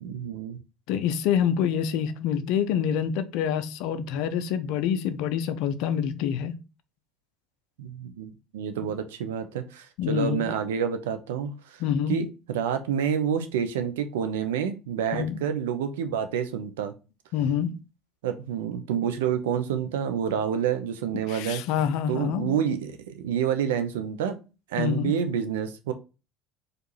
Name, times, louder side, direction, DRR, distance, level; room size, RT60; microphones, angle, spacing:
voice 1, 0.0-0.6 7.8-11.8 12.1-16.9 18.2-21.6 22.1-24.4 24.7-25.9, right 8 dB, 65° right, 0.6 m, -28 dB
voice 2, 0.9-6.6 10.0-10.5 11.8-12.2 15.1-15.4 17.3-17.8 21.3-22.6 24.8-25.1, left 8 dB, 55° left, 0.4 m, -26 dB
4.5 x 2.6 x 4.4 m
figure-of-eight pair, 65°, 0 cm